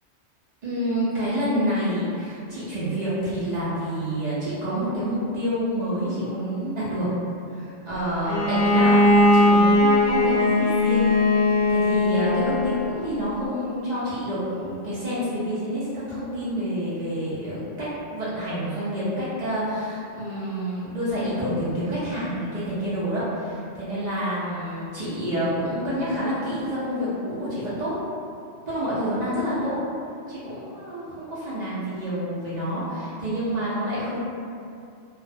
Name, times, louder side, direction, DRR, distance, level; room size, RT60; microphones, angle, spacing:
voice 1, 0.6-7.1 7.5-28.0 28.7-29.8 30.3-34.2, equal, 55° right, -10 dB, 0.5 m, -28 dB
Bowed string instrument, 8.3-13.0, left 2 dB, 60° left, 0.5 m, -19 dB
2.3 x 2.0 x 2.6 m, 2.5 s
omnidirectional pair, 1.2 m